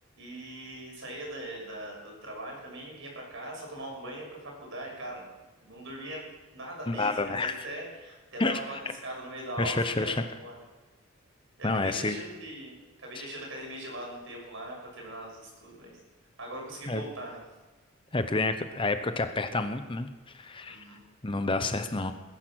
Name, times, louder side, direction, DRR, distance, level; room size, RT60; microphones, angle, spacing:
voice 1, 0.2-5.2 5.6-6.2 6.5-10.6 11.6-12.7 13.0-15.9 16.4-17.4 20.6-21.0, right 1 dB, 60° right, -1 dB, 6.3 m, -40 dB
voice 2, 6.9-7.6 8.4-8.6 9.6-10.2 11.6-12.2 16.9-17.0 18.1-20.1 20.3-20.8 21.2-22.1, left 3 dB, 25° left, 9 dB, 0.7 m, -29 dB
20.5 x 10.5 x 6.3 m, 1.2 s
head